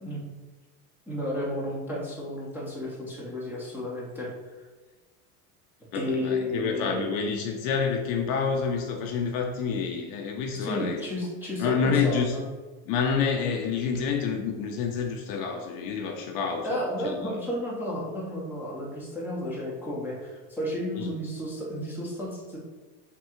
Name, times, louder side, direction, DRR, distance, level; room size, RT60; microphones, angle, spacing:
voice 1, 1.1-4.3 5.9-7.1 10.6-12.4 16.6-22.6, left 1 dB, 5° right, -7 dB, 0.5 m, -32 dB
voice 2, 5.9-11.0 11.6-12.3 12.9-17.3 20.9-21.1, left 6 dB, 45° left, 2 dB, 0.4 m, -28 dB
3.6 x 2.3 x 4.2 m, 1.3 s
supercardioid pair, 145°, 47 cm